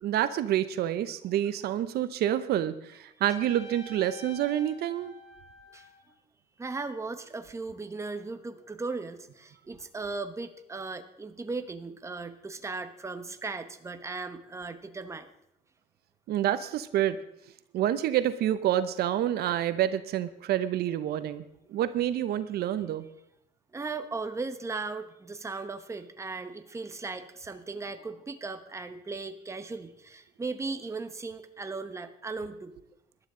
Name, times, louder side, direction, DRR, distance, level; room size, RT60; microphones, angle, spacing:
voice 1, 0.0-5.1 16.3-17.2 17.7-21.4 21.7-23.0, right 11 dB, 70° right, 12 dB, 0.8 m, -28 dB
Trumpet, 3.3-6.1, left 3 dB, 70° left, 2.1 m, -48 dB
voice 2, 6.6-15.3 23.7-32.7, right 3 dB, 15° right, 8 dB, 1.0 m, -37 dB
19.0 x 11.5 x 3.8 m, 0.80 s
cardioid pair, 110°, 17 cm